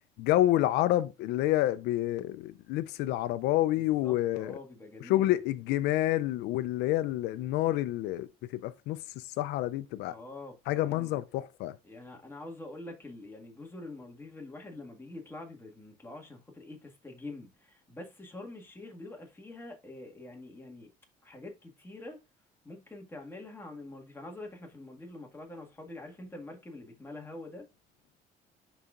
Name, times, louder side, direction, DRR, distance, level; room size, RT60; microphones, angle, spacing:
voice 1, 0.2-4.6 5.0-10.2 10.7-11.8, left 15 dB, 90° left, 0.4 m, -28 dB
voice 2, 3.8-5.4 10.1-11.2 11.8-20.9 21.2-22.2 22.6-27.7, left 2 dB, 15° left, 1.7 m, -45 dB
11.0 x 4.0 x 2.4 m
cardioid pair, 110°, 17 cm